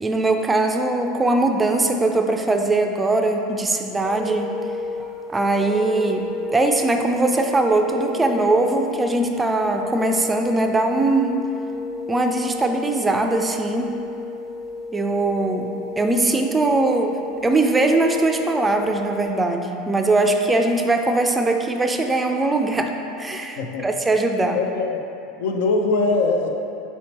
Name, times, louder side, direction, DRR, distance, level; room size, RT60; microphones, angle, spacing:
voice 1, 0.0-4.5 5.3-11.4 12.1-13.9 14.9-17.2 17.4-24.6, right 2 dB, 15° right, 4 dB, 0.3 m, -21 dB
sound 1, 4.0-19.3, left 3 dB, 15° left, 0.9 m, -33 dB
voice 2, 23.6-23.9 24.5-25.0 25.4-26.5, left 3 dB, 75° left, 3 dB, 0.4 m, -21 dB
4.3 x 2.9 x 4.2 m, 2.8 s
hypercardioid pair, 85°, 0 cm